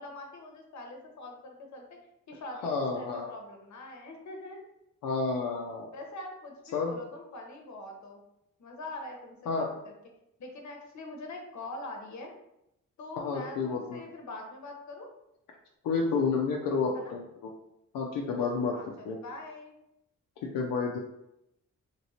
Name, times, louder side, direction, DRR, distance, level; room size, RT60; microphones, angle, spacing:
voice 1, 0.0-2.0 2.3-4.6 5.9-8.2 8.6-9.9 10.4-12.3 13.0-15.1 16.9-17.1 18.7-19.8, left 2 dB, 55° left, 2 dB, 0.8 m, -43 dB
voice 2, 2.6-3.3 5.0-5.9 6.7-7.0 9.5-9.7 13.2-14.0 15.8-17.5 17.9-18.7 19.0-19.2 20.5-21.0, left 4 dB, 85° left, -1 dB, 0.5 m, -30 dB
2.9 x 2.9 x 2.7 m, 0.83 s
cardioid pair, 65°, 33 cm